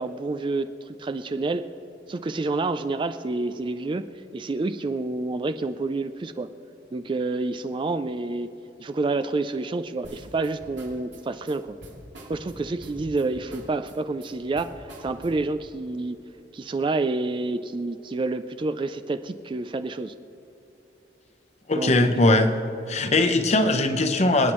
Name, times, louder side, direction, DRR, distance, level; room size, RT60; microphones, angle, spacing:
voice 1, 0.0-1.7 2.1-4.1 4.3-6.5 6.9-8.5 8.8-11.8 12.3-16.2 16.5-20.1 21.7-22.1, right 3 dB, 25° right, 11 dB, 0.3 m, -28 dB
sound 1, 10.0-15.6, right 1 dB, 90° right, 3.3 m, -45 dB
voice 2, 21.7-22.6 22.9-24.5, left 2 dB, 40° left, 6 dB, 0.9 m, -20 dB
26.5 x 9.3 x 3.1 m, 2.9 s
head